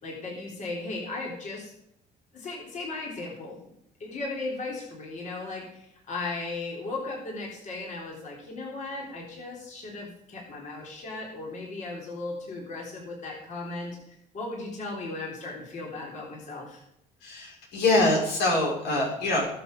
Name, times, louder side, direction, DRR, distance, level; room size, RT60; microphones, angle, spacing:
voice 1, 0.0-1.7 2.3-3.7 4.0-16.8, left 3 dB, 45° left, -2 dB, 3.7 m, -36 dB
voice 2, 17.2-19.5, left 2 dB, 85° left, -1 dB, 5.8 m, -24 dB
19.5 x 6.8 x 5.3 m, 0.80 s
cardioid pair, 110°, 17 cm